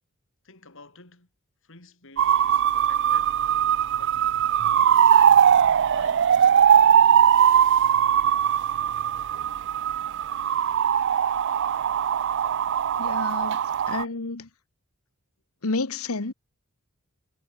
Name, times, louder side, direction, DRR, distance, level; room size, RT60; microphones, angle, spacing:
voice 1, 0.4-1.3 1.6-3.4 3.9-4.3 4.9-7.1, left 4 dB, 60° left, 4.2 m, -50 dB
sound 1, 2.2-14.0, right 9 dB, 55° right, 0.4 m, -20 dB
voice 2, 13.0-13.6 13.9-14.5 15.6-16.3, left 3 dB, 80° left, 1.3 m, -30 dB
head